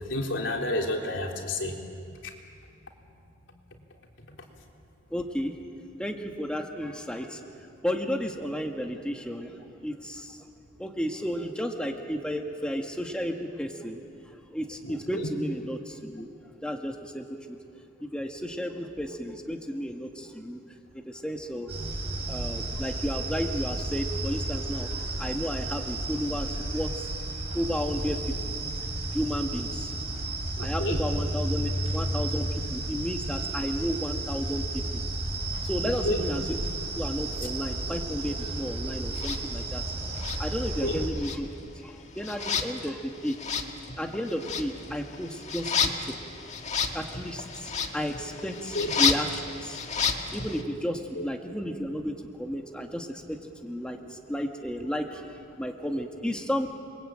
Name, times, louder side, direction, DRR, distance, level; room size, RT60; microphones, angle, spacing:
voice 1, 0.1-1.8 2.2-2.3 4.3-4.4 14.8-15.3 30.6-31.0 35.8-36.3 40.8-41.0 48.7-48.9 51.2-51.3, left 1 dB, 75° left, 1 dB, 3.6 m, -30 dB
voice 2, 5.1-5.5 6.0-7.4 7.8-10.5 10.8-14.0 14.3-16.3 16.6-17.6 18.0-20.6 20.9-21.7 22.3-24.9 25.2-27.1 27.5-28.2 29.1-29.9 30.6-35.0 35.6-36.6 37.0-39.8 40.4-41.5 41.8-43.4 44.0-46.1 46.9-49.8 50.3-56.8, equal, 5° left, 2 dB, 1.8 m, -33 dB
sound 1, 21.7-41.1, right 2 dB, 35° right, 7.0 m, -32 dB
sound 2, 39.1-39.4 40.1-40.9 41.2-50.6, left 6 dB, 40° left, 1.8 m, -31 dB
29.5 x 22.5 x 9.0 m, 2.5 s
head